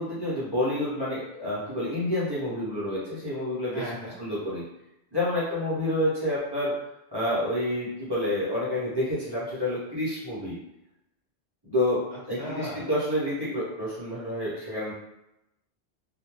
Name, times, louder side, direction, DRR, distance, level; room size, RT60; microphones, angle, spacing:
voice 1, 0.0-3.8 4.2-4.6 5.1-6.7 7.1-10.6 11.6-12.0 12.3-14.9, left 1 dB, 25° right, -10 dB, 0.6 m, -28 dB
voice 2, 3.7-4.2 12.3-12.9, equal, 40° left, -9 dB, 0.7 m, -36 dB
2.2 x 2.2 x 3.0 m, 0.87 s
omnidirectional pair, 1.1 m